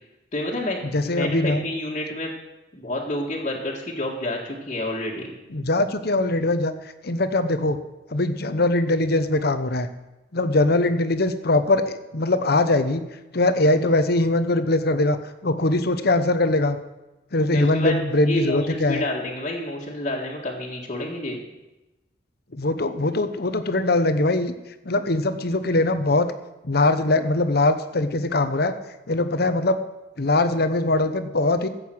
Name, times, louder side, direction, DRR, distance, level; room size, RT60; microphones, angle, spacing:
voice 1, 0.3-2.3 2.7-5.3 17.5-18.0 18.2-21.4, left 1 dB, 40° left, -6 dB, 1.9 m, -29 dB
voice 2, 0.9-1.6 5.5-6.7 7.0-7.8 8.1-9.9 10.3-13.0 13.3-15.2 15.4-16.8 17.3-19.0 22.5-24.5 24.8-26.3 26.6-28.7 29.1-29.8 30.2-31.7, left 2 dB, 55° left, 10 dB, 1.0 m, -21 dB
14.5 x 7.9 x 7.8 m, 1.0 s
head